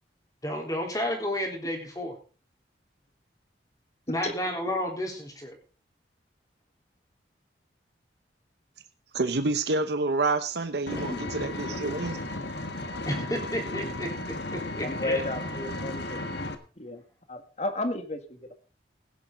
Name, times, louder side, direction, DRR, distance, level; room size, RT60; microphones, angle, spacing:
voice 1, 0.4-2.2 4.1-5.6 10.9-12.1 12.8-14.1 14.5-15.2, left 1 dB, 20° left, 1 dB, 3.6 m, -32 dB
voice 2, 9.1-12.2, right 3 dB, 65° right, 9 dB, 0.8 m, -28 dB
Vehicle, 10.9-16.6, left 2 dB, 70° left, 1.6 m, -34 dB
voice 3, 14.8-16.2 16.8-17.0 17.3-18.5, left 2 dB, 35° left, 7 dB, 1.9 m, -32 dB
16.5 x 10.5 x 3.8 m, 0.37 s
head